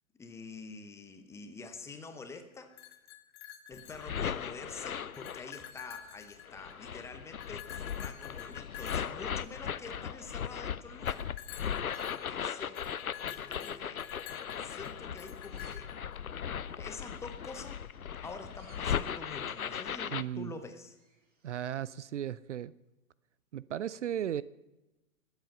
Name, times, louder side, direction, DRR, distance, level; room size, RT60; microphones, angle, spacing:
voice 1, 0.1-2.7 3.7-11.3 12.1-12.8 13.3-14.1 14.5-15.9 16.8-17.9 18.2-20.9, left 4 dB, 5° left, 0.7 m, -47 dB
sound 1, 2.6-4.6 4.9-6.9 7.4-10.1 11.0-16.2, left 11 dB, 25° left, 1.0 m, -49 dB
sound 2, 3.7-5.7 6.5-20.2, left 8 dB, 80° left, 0.6 m, -38 dB
sound 3, 4.6-21.7, right 4 dB, 20° right, 2.0 m, -69 dB
voice 2, 20.1-20.5 21.4-22.7 23.5-24.4, right 10 dB, 60° right, 0.5 m, -35 dB
21.0 x 8.1 x 5.4 m
figure-of-eight pair, 120°, 42 cm